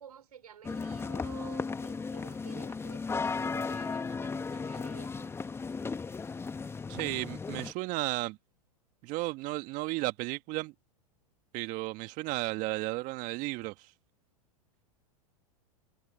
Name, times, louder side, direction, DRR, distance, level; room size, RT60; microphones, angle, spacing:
voice 1, 0.0-5.3, right 8 dB, 80° right, 3.6 m, -51 dB
sound 1, 0.6-7.7, left 4 dB, 15° left, 1.3 m, -35 dB
voice 2, 6.9-8.4 9.0-10.7 11.5-13.9, right 21 dB, 45° right, 1.6 m, -34 dB
hypercardioid pair, 105°, 19 cm